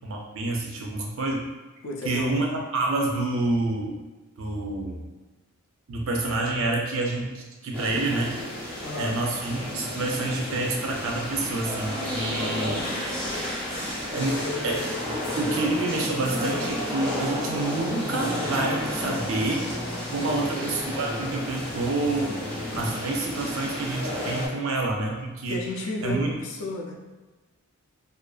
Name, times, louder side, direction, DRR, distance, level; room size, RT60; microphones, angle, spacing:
voice 1, 0.0-1.4 2.0-2.5 2.7-4.0 4.4-5.0 5.9-8.4 9.0-12.8 14.1-14.8 15.4-19.7 20.1-22.3 22.8-25.6 26.0-26.4, right 2 dB, 65° right, 0 dB, 0.5 m, -28 dB
voice 2, 1.8-2.4 8.8-9.2 12.4-12.9 20.2-20.5 25.5-27.0, left 2 dB, 65° left, 1 dB, 0.4 m, -33 dB
sound 1, 7.7-24.5, left 1 dB, 5° left, 0.6 m, -31 dB
2.5 x 2.3 x 2.3 m, 1.2 s
head